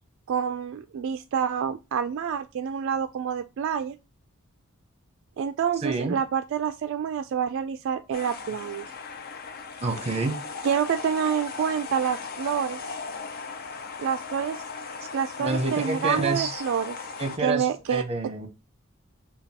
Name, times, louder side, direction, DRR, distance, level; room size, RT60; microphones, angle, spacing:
voice 1, 0.3-4.0 5.4-8.9 10.6-12.8 14.0-14.6 15.1-17.0 17.4-18.0, right 8 dB, 60° right, 0.3 m, -27 dB
voice 2, 5.8-6.2 9.8-10.4 15.4-16.6 17.2-18.5, right 3 dB, 30° right, 0.8 m, -28 dB
sound 1, 8.1-17.4, left 4 dB, 45° left, 0.5 m, -37 dB
5.2 x 2.3 x 2.8 m
head